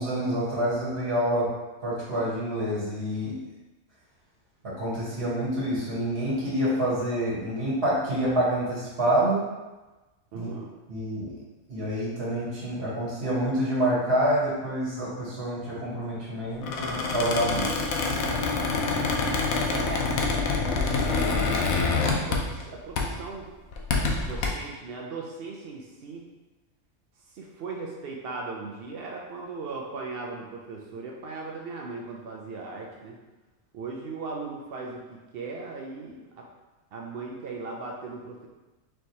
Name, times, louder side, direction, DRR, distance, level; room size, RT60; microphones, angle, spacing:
voice 1, 0.0-1.5 1.8-3.3 4.6-9.4 10.3-10.5 10.9-11.3 11.7-17.7, right 1 dB, 45° right, -8 dB, 1.3 m, -27 dB
voice 2, 10.3-10.7 18.6-18.9 19.6-20.4 20.7-21.6 22.1-23.5 24.2-26.2 27.3-33.2 33.7-36.5 36.9-38.5, right 3 dB, 85° right, -1 dB, 0.5 m, -38 dB
Squeak, 16.6-22.7 23.0-23.2 23.7-24.5, left 3 dB, 70° left, 1.0 m, -26 dB
4.4 x 3.2 x 2.8 m, 1.1 s
omnidirectional pair, 1.6 m